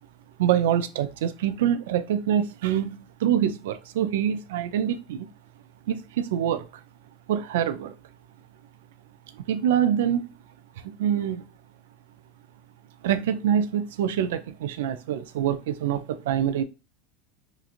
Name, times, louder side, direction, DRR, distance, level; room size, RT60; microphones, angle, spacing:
voice 1, 0.4-5.3 5.9-6.7 7.3-7.9 9.5-10.3 11.0-11.5 13.0-16.6, right 10 dB, 80° right, 0.3 m, -25 dB
3.0 x 2.4 x 2.4 m
hypercardioid pair, 90°, 0 cm